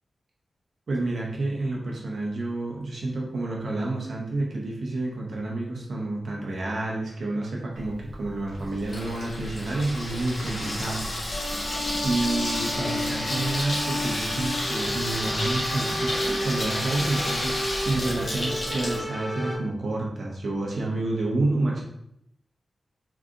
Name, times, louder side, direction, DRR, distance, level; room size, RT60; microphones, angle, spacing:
voice 1, 0.9-11.0 12.0-17.6 17.8-21.8, right 2 dB, 70° right, -2 dB, 1.0 m, -29 dB
Water tap faucet / Sink (filling or washing), 7.8-19.0, left 1 dB, 70° left, 1.2 m, -31 dB
sound 1, 11.3-19.6, equal, 10° left, 1.1 m, -33 dB
3.8 x 3.3 x 2.5 m, 0.77 s
wide cardioid pair, 115°, 0 cm